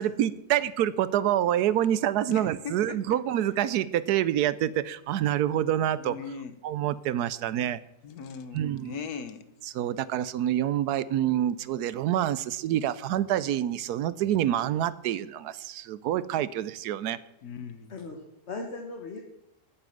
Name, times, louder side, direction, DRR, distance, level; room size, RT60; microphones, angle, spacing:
voice 1, 0.0-6.2 6.6-7.8 8.5-9.0 9.7-17.2, right 11 dB, 75° right, 17 dB, 1.1 m, -27 dB
voice 2, 2.3-3.2 6.0-6.5 8.0-9.5 17.4-17.9, left 6 dB, 70° left, 11 dB, 1.5 m, -39 dB
voice 3, 17.9-19.2, left 3 dB, 45° left, 1 dB, 1.6 m, -38 dB
8.9 x 8.6 x 7.7 m, 0.83 s
omnidirectional pair, 1.7 m